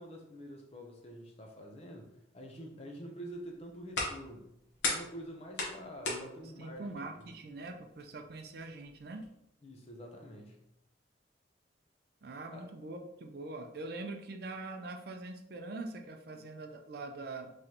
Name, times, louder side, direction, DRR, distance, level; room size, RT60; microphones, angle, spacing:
voice 1, 0.0-4.5 4.8-6.9 7.1-7.3 9.6-10.6 12.5-12.7, equal, 35° left, 2 dB, 0.6 m, -47 dB
sound 1, 3.4-9.3, left 3 dB, 70° left, 1.0 m, -41 dB
voice 2, 6.6-9.2 12.2-17.5, right 2 dB, 55° right, 4 dB, 0.4 m, -43 dB
3.8 x 3.1 x 2.8 m, 0.81 s
head